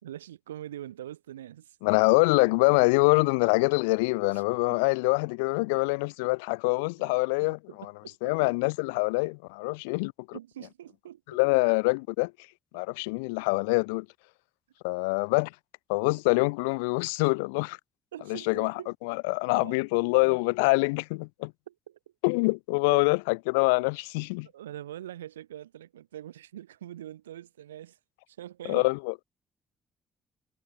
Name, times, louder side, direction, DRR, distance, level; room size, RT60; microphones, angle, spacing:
voice 1, 0.0-1.8 4.3-4.4 4.7-4.9 7.0-7.1 7.7-8.4 10.3-11.4 18.1-18.9 19.5-19.8 21.7-22.0 22.9-23.0 24.5-28.0 28.3-28.9, right 12 dB, 80° right, 3.9 m, -43 dB
voice 2, 1.8-7.9 8.2-10.4 11.3-12.3 12.7-14.1 14.8-15.5 15.9-17.8 18.3-18.7 19.0-21.5 22.2-24.5 28.7-29.1, left 29 dB, 75° left, 0.7 m, -25 dB
figure-of-eight pair, 45°, 0 cm